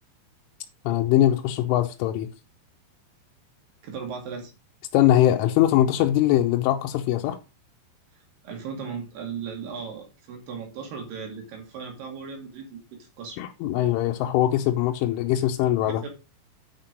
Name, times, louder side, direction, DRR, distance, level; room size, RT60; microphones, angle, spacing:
voice 1, 0.9-2.3 4.9-7.4 13.4-16.0, left 12 dB, 90° left, 3.3 m, -22 dB
voice 2, 3.8-4.5 8.4-13.4 16.0-16.1, right 6 dB, 60° right, 4.2 m, -37 dB
9.5 x 5.8 x 5.1 m
omnidirectional pair, 5.5 m